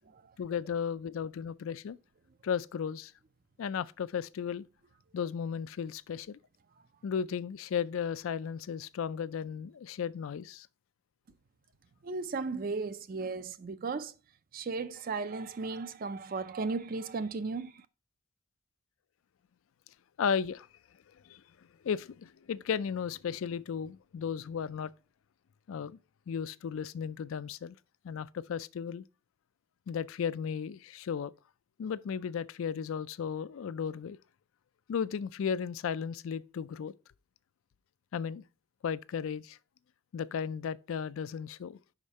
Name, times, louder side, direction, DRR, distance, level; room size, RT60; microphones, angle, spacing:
voice 1, 0.4-2.0 2.4-3.1 3.6-4.7 5.1-6.4 7.0-10.7 20.2-20.7 21.2-24.9 25.7-26.0 26.3-27.8 28.0-29.0 29.9-31.3 31.8-34.2 34.9-36.9 38.1-38.4 38.8-39.6 40.1-41.8, left 7 dB, 70° left, 0.3 m, -35 dB
voice 2, 12.0-14.1 14.5-17.8, right 4 dB, 40° right, 0.4 m, -35 dB
5.5 x 5.1 x 4.0 m
head